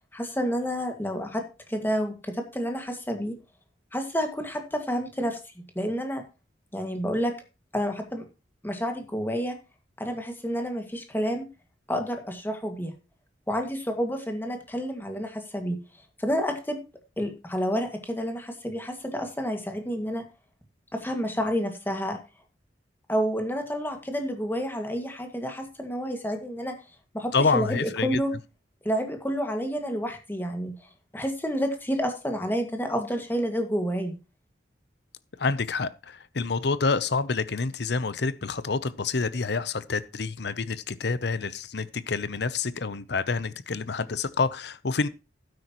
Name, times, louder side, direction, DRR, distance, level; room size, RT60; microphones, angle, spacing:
voice 1, 0.1-1.4 1.7-3.4 3.9-5.4 5.8-6.2 6.7-7.3 7.7-8.2 8.6-9.6 10.0-11.5 11.9-12.9 13.5-15.8 16.2-16.8 17.2-20.2 20.9-22.2 23.1-26.7 27.1-28.3 28.8-30.7 31.1-34.2, equal, 10° left, 2.0 m, -29 dB
voice 2, 27.3-28.2 35.4-45.1, left 4 dB, 65° left, 0.7 m, -28 dB
12.0 x 9.6 x 3.1 m
head